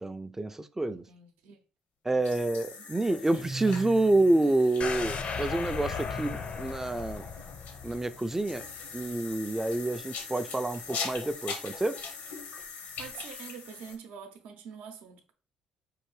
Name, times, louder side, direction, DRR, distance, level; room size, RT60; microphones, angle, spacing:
voice 1, 0.0-1.0 2.0-7.3 7.8-8.6 8.9-12.0, right 2 dB, 15° right, 0.4 m, -28 dB
voice 2, 0.9-1.6 2.1-2.9 13.0-15.3, right 7 dB, 75° right, 0.7 m, -46 dB
sound 1, 2.2-14.0, left 5 dB, 75° left, 0.8 m, -42 dB
Guitar, 3.3-4.6, right 3 dB, 40° right, 0.9 m, -40 dB
sound 2, 4.8-8.8 9.1-9.2, left 5 dB, 50° left, 0.5 m, -36 dB
4.6 x 2.5 x 3.2 m
supercardioid pair, 65°, 3 cm